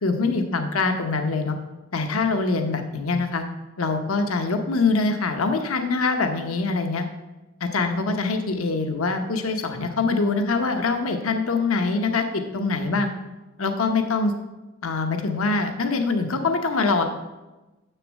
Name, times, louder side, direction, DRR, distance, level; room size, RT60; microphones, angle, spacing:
voice 1, 0.0-1.6 1.9-3.4 3.8-7.1 7.6-13.1 13.6-14.3 14.8-17.1, left 3 dB, 85° left, 6 dB, 0.9 m, -24 dB
7.0 x 6.7 x 7.3 m, 1.1 s
head